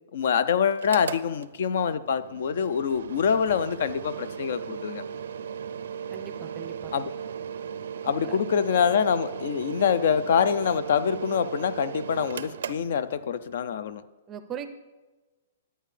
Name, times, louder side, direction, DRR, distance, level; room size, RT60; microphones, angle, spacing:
voice 1, 0.1-5.0 6.9-7.1 8.0-14.0, left 7 dB, 60° left, 15 dB, 0.4 m, -25 dB
Mechanical fan, 0.7-13.5, right 7 dB, 75° right, 0.4 m, -37 dB
voice 2, 6.1-6.9 8.1-8.4 14.3-14.7, right 8 dB, 15° right, 9 dB, 0.5 m, -39 dB
11.0 x 8.9 x 3.3 m, 1.2 s
hypercardioid pair, 165°, 0 cm